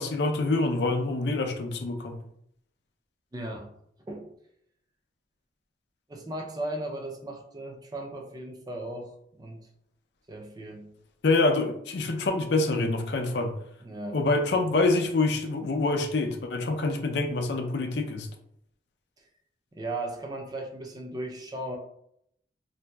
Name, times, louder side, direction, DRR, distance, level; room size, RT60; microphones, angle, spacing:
voice 1, 0.0-2.2 11.2-13.5 14.1-18.3, left 2 dB, 60° left, 4 dB, 0.5 m, -26 dB
voice 2, 3.3-3.7 4.1-4.3 6.1-9.7 10.3-10.9 13.8-14.2 19.2-19.3 19.7-21.8, right 1 dB, 20° right, 2 dB, 0.4 m, -36 dB
3.8 x 2.6 x 2.2 m, 0.72 s
head